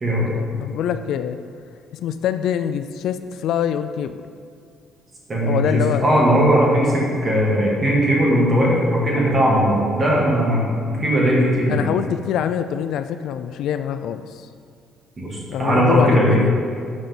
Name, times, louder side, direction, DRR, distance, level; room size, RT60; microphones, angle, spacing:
voice 1, 0.3-1.4 1.9-4.2 5.4-6.2 11.7-14.5 15.5-16.5, left 9 dB, 65° left, 10 dB, 0.3 m, -24 dB
voice 2, 5.3-11.8 15.2-16.4, equal, 25° right, -4 dB, 1.9 m, -18 dB
9.6 x 4.1 x 7.1 m, 2.2 s
cardioid pair, 175°, 0 cm